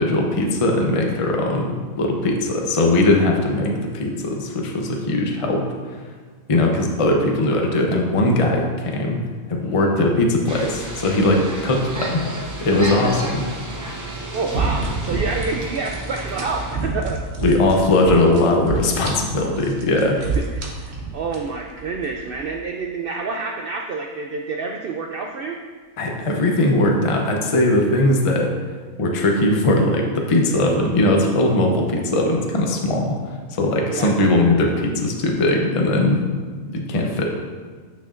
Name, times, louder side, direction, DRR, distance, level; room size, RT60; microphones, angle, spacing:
voice 1, 0.0-5.6 6.5-9.2 9.5-12.2 12.6-13.4 17.4-20.2 26.0-28.5 29.0-33.2 33.6-36.2 36.7-37.2, left 1 dB, 35° left, 1 dB, 0.6 m, -19 dB
sound 1, 10.5-16.8, right 1 dB, 25° right, 0.4 m, -32 dB
voice 2, 14.3-17.2 20.2-20.7 21.1-25.6 33.9-34.1, right 4 dB, 85° right, 2 dB, 0.5 m, -28 dB
sound 2, 14.5-22.6, right 3 dB, 50° right, 1.1 m, -29 dB
9.1 x 6.4 x 2.5 m, 1.5 s
omnidirectional pair, 1.5 m